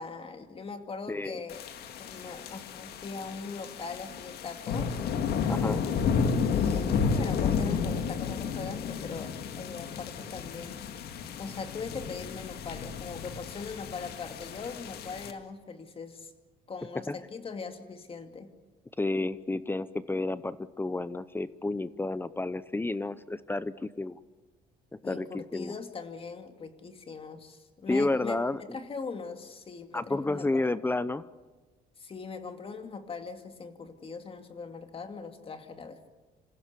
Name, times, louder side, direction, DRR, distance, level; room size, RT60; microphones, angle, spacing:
voice 1, 0.0-1.6 2.0-5.0 6.0-10.8 11.4-16.3 16.7-18.5 25.0-30.7 32.0-36.1, left 4 dB, 35° left, 7 dB, 2.4 m, -41 dB
voice 2, 1.1-1.4 5.5-5.8 17.1-17.2 19.0-24.2 24.9-25.7 27.9-28.8 29.9-31.2, left 2 dB, 10° left, 16 dB, 0.7 m, -31 dB
sound 1, 1.5-15.3, left 6 dB, 70° left, 2.0 m, -32 dB
27.0 x 16.0 x 8.3 m, 1.3 s
cardioid pair, 110°, 17 cm